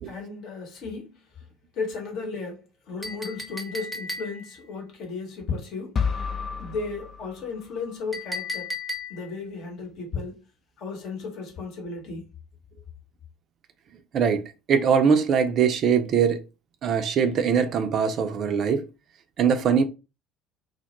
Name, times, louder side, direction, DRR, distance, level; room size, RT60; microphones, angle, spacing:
voice 1, 0.1-1.2 1.7-2.6 2.9-6.0 6.6-8.7 9.1-10.4 10.8-12.2, left 4 dB, 50° left, 0.9 m, -34 dB
Chink clink, 3.0-4.6 8.1-9.4, left 2 dB, ahead, 0.7 m, -35 dB
sound 1, 6.0-8.0, left 6 dB, 35° left, 0.3 m, -31 dB
voice 2, 14.1-16.4 16.8-18.8 19.4-19.8, right 7 dB, 45° right, 0.4 m, -22 dB
2.2 x 2.0 x 2.9 m
figure-of-eight pair, 60°, 0 cm